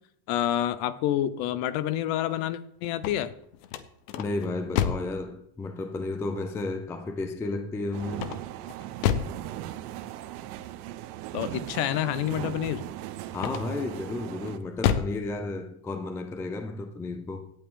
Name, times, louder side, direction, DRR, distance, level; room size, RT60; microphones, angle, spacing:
voice 1, 0.3-3.3 11.3-12.8, left 12 dB, 50° left, 0.8 m, -28 dB
sound 1, 2.9-5.2 8.1-9.4 13.3-13.9 14.4-15.2, left 9 dB, 75° left, 1.2 m, -29 dB
voice 2, 4.2-8.4 13.3-17.5, left 2 dB, 5° left, 0.4 m, -33 dB
sound 2, 7.9-14.6, right 13 dB, 70° right, 1.1 m, -38 dB
17.0 x 8.7 x 3.8 m
supercardioid pair, 155°, 47 cm